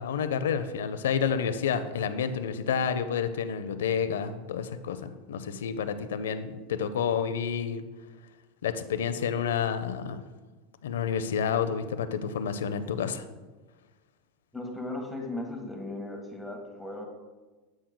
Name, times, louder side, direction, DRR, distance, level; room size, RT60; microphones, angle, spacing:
voice 1, 0.0-7.8 8.6-10.2 10.8-13.2, left 7 dB, 85° left, 11 dB, 0.5 m, -29 dB
voice 2, 14.5-17.0, left 2 dB, 5° left, 1 dB, 1.4 m, -37 dB
8.4 x 7.8 x 2.2 m, 1.2 s
hypercardioid pair, 110°, 0 cm